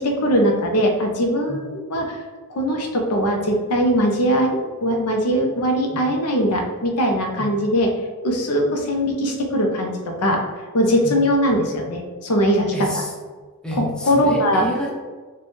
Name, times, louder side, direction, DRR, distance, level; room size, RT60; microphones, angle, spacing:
voice 1, 0.0-2.2 2.5-7.9 8.2-10.4 10.7-12.7 13.8-14.6, equal, 85° left, 2 dB, 0.7 m, -20 dB
voice 2, 12.7-13.1 13.6-14.9, equal, 5° left, -3 dB, 0.5 m, -29 dB
3.1 x 2.3 x 4.2 m, 1.4 s
head